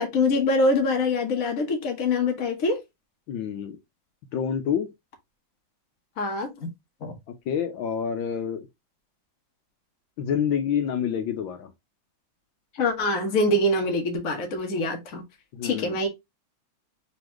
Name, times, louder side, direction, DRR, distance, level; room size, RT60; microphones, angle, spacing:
voice 1, 0.0-2.8 6.2-6.5 7.0-7.2 12.8-15.2 15.6-16.1, left 2 dB, 50° left, 1.5 m, -24 dB
voice 2, 3.3-3.8 4.3-4.9 7.5-8.6 10.2-11.7 15.5-15.9, left 8 dB, 75° left, 1.4 m, -27 dB
4.0 x 3.4 x 3.0 m
omnidirectional pair, 2.2 m